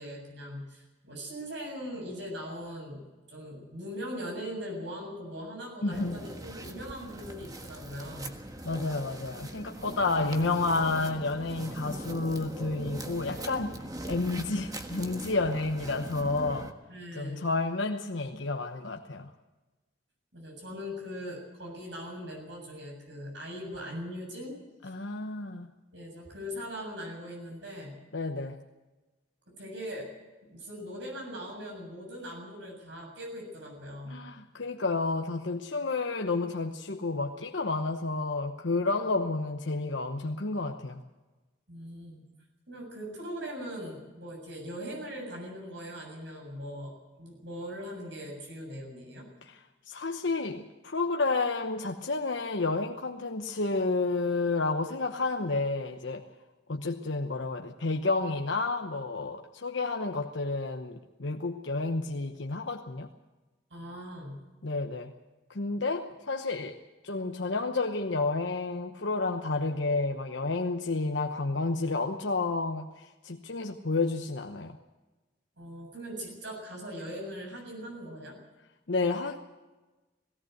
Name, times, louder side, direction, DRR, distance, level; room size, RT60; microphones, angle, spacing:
voice 1, 0.0-3.0 3.3-8.4 16.9-17.5 20.3-24.6 25.9-27.9 29.5-30.1 30.4-34.3 41.7-42.2 42.7-46.9 47.2-49.3 63.7-64.4 75.6-78.4, equal, 70° right, 1 dB, 7.4 m, -40 dB
voice 2, 5.8-6.2 8.6-16.7 17.1-19.3 24.8-25.7 28.1-28.6 34.1-41.0 49.4-56.3 56.7-63.1 64.6-65.1 65.5-66.8 67.0-74.8 78.9-79.4, left 3 dB, 75° left, 3 dB, 1.0 m, -30 dB
sound 1, 5.9-16.7, right 1 dB, 20° right, 1.5 m, -41 dB
18.5 x 17.5 x 8.0 m, 1.2 s
head